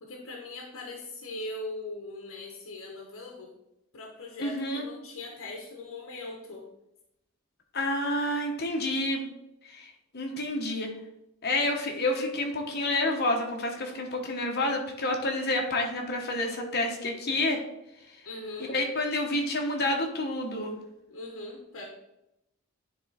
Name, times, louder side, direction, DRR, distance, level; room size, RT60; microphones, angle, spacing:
voice 1, 0.0-3.5 3.9-6.7 18.2-18.8 21.1-21.9, left 2 dB, 65° left, 0 dB, 1.0 m, -40 dB
voice 2, 4.4-4.9 7.7-9.3 9.7-10.9 11.4-17.6 18.7-20.8, left 1 dB, 45° left, 2 dB, 1.1 m, -29 dB
9.9 x 3.4 x 4.1 m, 0.86 s
head